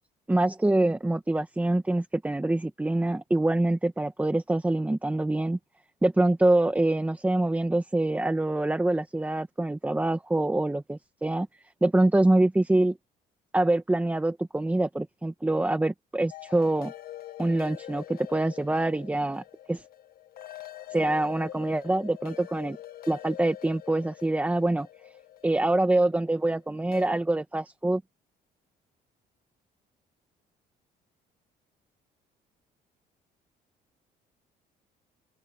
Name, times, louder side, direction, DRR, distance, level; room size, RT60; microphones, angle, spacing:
voice 1, 0.3-5.6 6.0-11.5 11.8-13.0 13.5-16.9 17.4-19.4 19.7-19.8 20.9-22.8 23.1-24.9 25.4-28.0, right 2 dB, 10° right, 1.5 m, -25 dB
sound 1, 16.3-27.1, left 12 dB, 65° left, 1.8 m, -45 dB
open air
cardioid pair, 110°, 17 cm